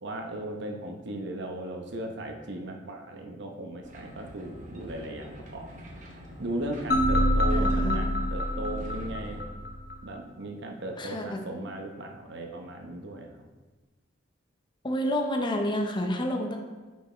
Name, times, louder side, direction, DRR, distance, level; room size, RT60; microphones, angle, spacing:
voice 1, 0.0-5.7 6.4-9.4 10.0-13.5, right 1 dB, 65° right, 3 dB, 0.8 m, -37 dB
sound 1, 3.8-9.4, equal, 40° right, 1.0 m, -46 dB
sound 2, 6.9-10.0, equal, 50° left, 1.0 m, -26 dB
voice 2, 7.5-8.0 11.0-11.4 14.8-16.6, equal, 25° left, 3 dB, 0.6 m, -29 dB
5.8 x 4.8 x 4.3 m, 1.3 s
head